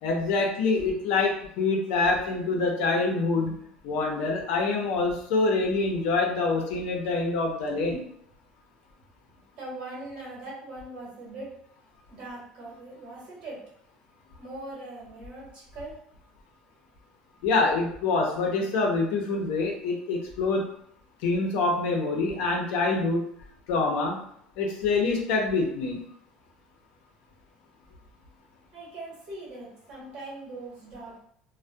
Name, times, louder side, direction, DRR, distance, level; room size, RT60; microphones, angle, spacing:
voice 1, 0.0-3.5 3.8-8.0 17.4-20.6 21.2-23.2 23.7-24.2 24.6-26.0, left 3 dB, 75° left, 1 dB, 0.6 m, -25 dB
voice 2, 9.5-11.5 12.1-13.6 14.4-16.0 28.7-31.2, right 2 dB, 50° right, -5 dB, 1.0 m, -41 dB
2.6 x 2.1 x 2.2 m, 0.68 s
cardioid pair, 165°, 2 cm